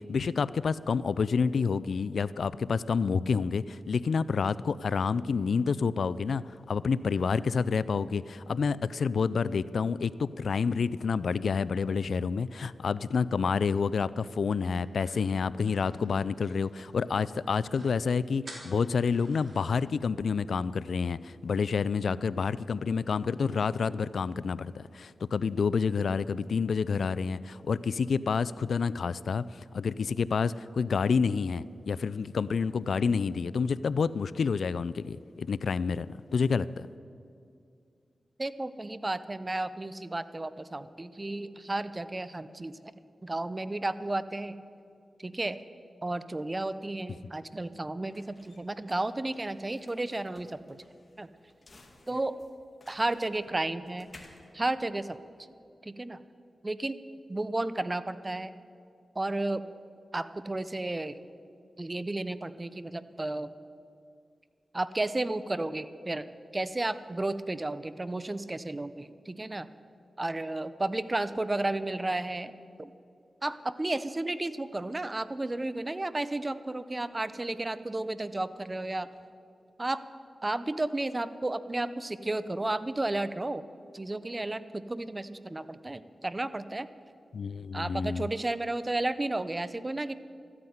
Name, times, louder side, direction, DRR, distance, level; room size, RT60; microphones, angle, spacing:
voice 1, 0.0-36.9 87.3-88.3, left 5 dB, 75° left, 18 dB, 0.4 m, -29 dB
sound 1, 14.7-17.1 17.4-17.5 17.7-18.0 18.4-19.8, right 2 dB, 60° right, 3.6 m, -51 dB
voice 2, 38.4-42.9 43.2-44.6 45.2-45.6 46.0-50.8 51.2-51.3 52.1-52.4 52.9-54.1 54.5-55.2 55.8-56.2 56.6-57.0 57.3-58.5 59.1-59.7 60.1-61.2 61.8-63.5 64.7-66.3 66.5-69.7 70.2-72.5 72.8-72.9 73.4-79.1 79.8-80.0 80.4-83.6 83.9-86.9 87.7-90.1, right 2 dB, 30° right, 14 dB, 0.7 m, -33 dB
sound 2, 47.1-55.7, left 2 dB, 45° left, 2.1 m, -58 dB
13.5 x 9.6 x 9.3 m, 2.4 s
cardioid pair, 50°, 0 cm